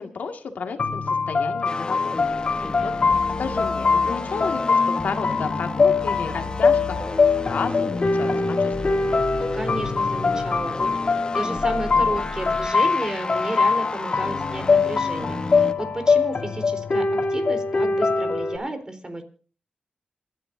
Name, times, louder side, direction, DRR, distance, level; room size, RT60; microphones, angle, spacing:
voice 1, 0.0-2.1 2.6-2.9 3.4-6.9 7.4-9.0, left 5 dB, 85° left, 5 dB, 2.0 m, -32 dB
sound 1, 0.8-18.6, left 4 dB, 60° left, 2.9 m, -23 dB
sound 2, 1.6-15.7, left 2 dB, 35° left, 1.2 m, -32 dB
voice 2, 2.6-3.2 9.5-19.2, right 1 dB, 30° right, 7 dB, 3.9 m, -32 dB
27.5 x 10.5 x 2.7 m, 0.39 s
cardioid pair, 55°, 3 cm